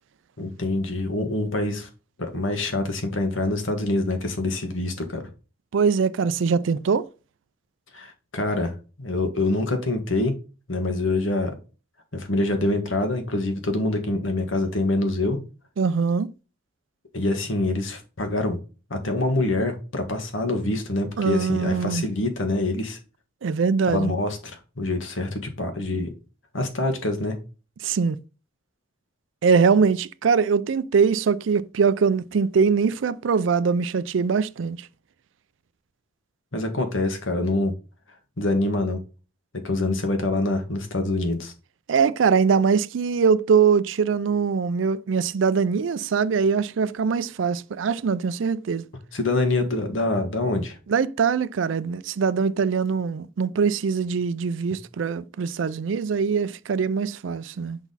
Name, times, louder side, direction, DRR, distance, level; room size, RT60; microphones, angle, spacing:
voice 1, 0.4-1.9 2.2-5.2 7.9-8.7 9.0-10.3 10.7-11.5 12.1-15.4 17.1-18.6 18.9-23.0 23.9-26.1 26.5-27.4 36.5-37.7 38.4-39.0 39.6-41.5 49.1-50.8, left 2 dB, 90° left, 1.5 m, -25 dB
voice 2, 5.7-7.1 15.8-16.3 21.2-22.0 23.4-24.1 27.8-28.2 29.4-34.8 41.9-48.8 50.9-57.8, right 5 dB, 75° right, 0.4 m, -22 dB
5.9 x 4.0 x 4.0 m
head